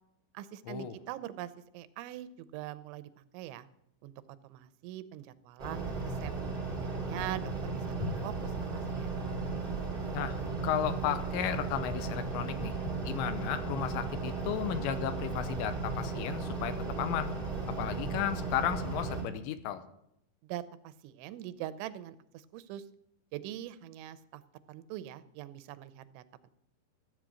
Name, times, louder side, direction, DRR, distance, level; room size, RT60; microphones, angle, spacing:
voice 1, 0.3-3.7 4.0-4.1 4.4-6.3 6.8-9.2 20.4-22.9 23.3-24.4 24.7-26.5, right 13 dB, 90° right, 14 dB, 3.0 m, -43 dB
sound 1, 5.6-19.2, right 3 dB, 20° right, 1.7 m, -35 dB
voice 2, 10.6-12.7 13.0-17.3 17.8-19.8, left 11 dB, 85° left, 11 dB, 3.0 m, -34 dB
14.5 x 8.4 x 6.2 m, 0.77 s
omnidirectional pair, 5.3 m